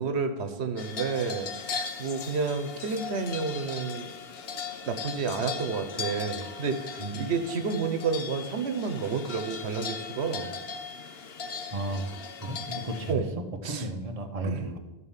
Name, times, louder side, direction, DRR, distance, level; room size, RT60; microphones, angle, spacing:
voice 1, 0.0-4.1 4.9-10.5 13.1-13.3 13.6-13.8 14.4-14.6, right 5 dB, 85° right, 8 dB, 1.1 m, -30 dB
sound 1, 0.8-13.1, left 6 dB, 70° left, 1.0 m, -38 dB
voice 2, 7.0-7.3 11.7-12.1 12.4-14.8, right 2 dB, 35° right, 3 dB, 1.1 m, -34 dB
12.5 x 4.3 x 7.2 m, 1.0 s
omnidirectional pair, 1.1 m